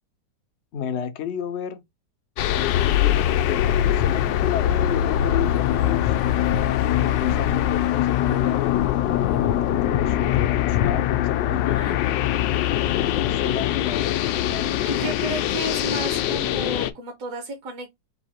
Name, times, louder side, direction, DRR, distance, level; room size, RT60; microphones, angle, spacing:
voice 1, 0.7-1.8 2.5-6.2 6.7-11.8 12.6-15.1, left 8 dB, 65° left, 0.7 m, -32 dB
sound 1, 2.4-16.9, left 12 dB, 85° left, 1.3 m, -22 dB
voice 2, 11.6-12.0 12.9-13.0 14.8-18.0, right 2 dB, 55° right, 1.2 m, -33 dB
4.1 x 2.8 x 4.2 m
omnidirectional pair, 1.9 m